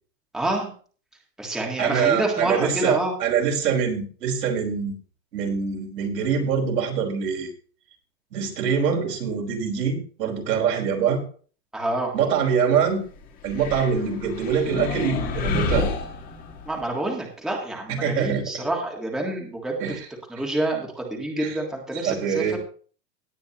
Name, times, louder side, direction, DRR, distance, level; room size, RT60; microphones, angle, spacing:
voice 1, 0.3-0.7 1.4-3.1 11.7-12.1 16.7-19.8 20.3-22.6, right 1 dB, ahead, -1 dB, 1.7 m, -27 dB
voice 2, 1.8-4.9 5.3-7.5 8.3-11.2 12.1-13.0 13.4-15.9 17.9-18.4 19.8-20.0 21.4-21.6 22.0-22.6, right 7 dB, 85° right, 0 dB, 5.0 m, -24 dB
sound 1, 13.4-16.8, left 4 dB, 20° left, 1.6 m, -29 dB
17.5 x 9.5 x 3.0 m, 0.41 s
supercardioid pair, 170°, 47 cm